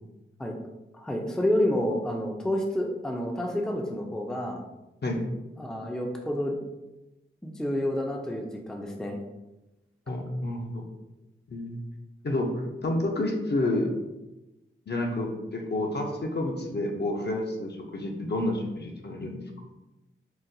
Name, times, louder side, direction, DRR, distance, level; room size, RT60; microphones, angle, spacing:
voice 1, 0.9-4.6 5.6-6.6 7.4-9.2, left 1 dB, 5° left, 1 dB, 0.4 m, -29 dB
voice 2, 10.1-10.8 11.5-11.8 12.2-13.9 14.9-19.4, left 1 dB, 55° left, 1 dB, 0.6 m, -29 dB
3.9 x 2.2 x 2.6 m, 1.0 s
wide cardioid pair, 55°, 21 cm